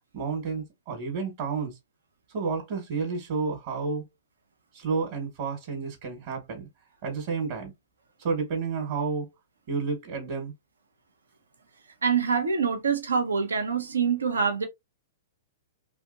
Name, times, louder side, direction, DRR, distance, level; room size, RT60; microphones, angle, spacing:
voice 1, 0.1-1.8 2.3-4.1 4.7-6.7 7.0-7.7 8.2-9.3 9.7-10.5, right 5 dB, 55° right, 1.4 m, -30 dB
voice 2, 12.0-14.7, right 6 dB, 90° right, 0.8 m, -25 dB
3.2 x 2.8 x 2.6 m
hypercardioid pair, 120°, 0 cm